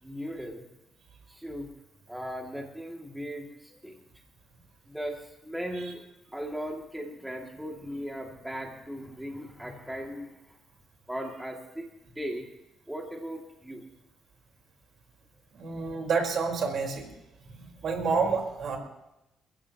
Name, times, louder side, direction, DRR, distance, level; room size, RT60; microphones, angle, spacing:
voice 1, 0.0-0.6 1.3-1.7 2.1-4.0 4.9-6.0 6.3-10.3 11.1-11.9 12.2-12.4 12.9-13.8, equal, 5° right, 0 dB, 2.4 m, -37 dB
voice 2, 15.5-17.1 17.5-18.8, right 5 dB, 65° right, 2 dB, 4.3 m, -29 dB
29.0 x 15.5 x 3.0 m, 0.91 s
cardioid pair, 90°, 0 cm